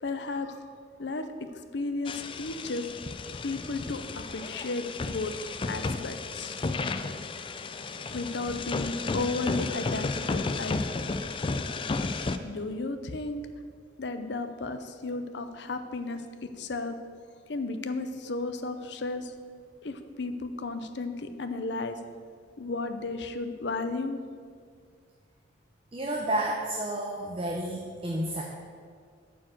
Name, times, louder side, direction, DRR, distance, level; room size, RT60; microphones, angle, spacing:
voice 1, 0.0-0.7 1.0-2.9 3.4-5.3 5.7-6.6 8.1-10.8 12.4-13.4 14.0-17.0 17.5-19.3 19.8-22.0 22.6-24.2, left 3 dB, 65° left, 9 dB, 0.6 m, -34 dB
sound 1, 2.0-12.4, left 3 dB, 25° left, 0.3 m, -33 dB
voice 2, 25.9-28.4, right 1 dB, 30° right, 0 dB, 0.7 m, -31 dB
9.1 x 4.6 x 7.5 m, 2.1 s
head